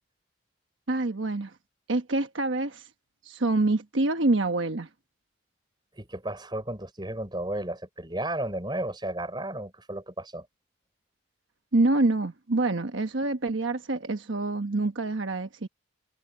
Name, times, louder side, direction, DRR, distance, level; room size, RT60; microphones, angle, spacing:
voice 1, 0.9-1.5 1.9-2.9 3.2-4.9 11.7-15.7, right 2 dB, 75° right, 1.1 m, -26 dB
voice 2, 6.0-10.5, right 1 dB, 20° right, 5.5 m, -33 dB
head